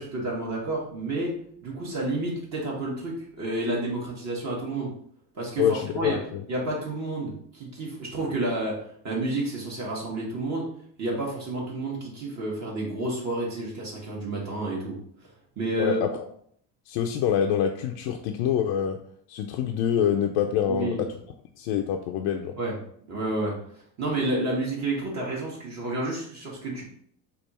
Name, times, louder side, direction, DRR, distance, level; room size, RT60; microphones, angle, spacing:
voice 1, 0.0-1.3 1.6-4.9 5.3-6.2 6.5-8.8 9.0-10.7 11.0-15.0 15.6-16.0 20.7-21.0 22.6-22.7 23.1-23.5 24.0-26.8, right 2 dB, 40° right, -4 dB, 1.3 m, -30 dB
voice 2, 5.6-6.4 15.8-16.1 16.9-19.0 19.3-21.1 21.6-22.5, left 9 dB, 75° left, 3 dB, 0.5 m, -25 dB
3.4 x 2.4 x 4.1 m, 0.64 s
supercardioid pair, 115°, 42 cm